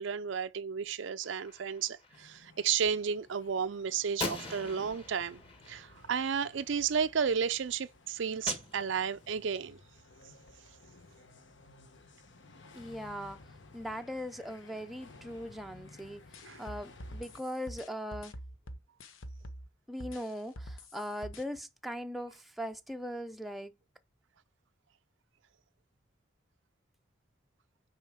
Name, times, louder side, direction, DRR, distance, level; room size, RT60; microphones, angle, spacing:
voice 1, 0.0-5.4 5.7-9.8 16.4-16.6, right 7 dB, 70° right, 0.5 m, -32 dB
Gunshot gunfire, 1.2-2.2 4.2-6.6 8.5-9.5, left 3 dB, 30° left, 1.6 m, -42 dB
sound 1, 2.1-17.4, left 2 dB, 65° left, 1.1 m, -57 dB
voice 2, 12.7-13.4 13.7-16.2 16.6-18.3 19.9-23.7, equal, ahead, 0.5 m, -40 dB
sound 2, 16.3-19.7 20.0-21.4, equal, 90° left, 1.0 m, -45 dB
6.6 x 4.9 x 6.2 m
head